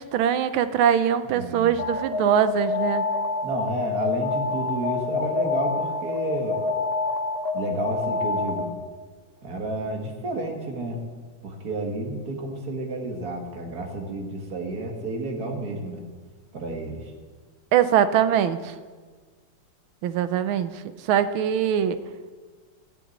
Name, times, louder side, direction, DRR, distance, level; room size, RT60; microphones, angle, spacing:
voice 1, 0.0-3.0 17.7-18.7 20.0-22.0, right 9 dB, 90° right, 12 dB, 1.6 m, -22 dB
voice 2, 1.3-1.8 3.4-6.6 7.5-8.7 9.4-11.0 11.4-16.0 16.5-17.1, right 2 dB, 50° right, 2 dB, 2.2 m, -31 dB
Alarm, 1.8-8.9, left 4 dB, 35° left, 1.4 m, -27 dB
14.0 x 7.0 x 8.7 m, 1.5 s
omnidirectional pair, 2.2 m